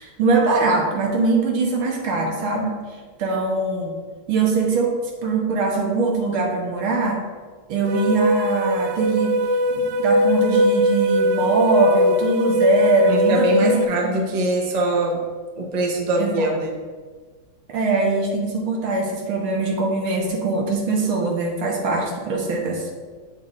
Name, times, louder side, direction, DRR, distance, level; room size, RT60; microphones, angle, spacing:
voice 1, 0.0-2.8 3.2-3.9 4.3-7.2 7.7-9.4 9.7-14.1 16.2-16.6 17.7-22.9, right 3 dB, 70° right, 0 dB, 1.9 m, -22 dB
sound 1, 7.9-13.8, equal, 85° right, 0.9 m, -20 dB
voice 2, 13.1-15.2 15.6-16.7, right 1 dB, 50° right, 0 dB, 0.4 m, -22 dB
8.7 x 6.9 x 2.6 m, 1.5 s
omnidirectional pair, 2.4 m